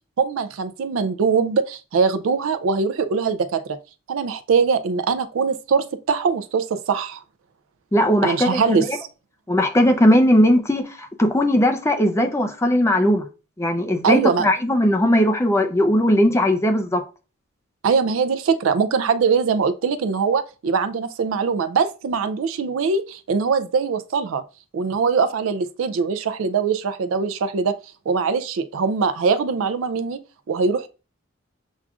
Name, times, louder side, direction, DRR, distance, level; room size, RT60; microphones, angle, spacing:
voice 1, 0.2-3.8 4.1-7.2 8.2-9.1 14.0-14.5 17.8-24.4 24.7-27.8 28.1-30.2 30.5-30.9, right 5 dB, 80° right, 0.4 m, -22 dB
voice 2, 7.9-8.6 8.9-9.0 9.5-13.2 13.6-17.0, left 1 dB, 15° left, 0.4 m, -18 dB
7.2 x 2.4 x 2.3 m
head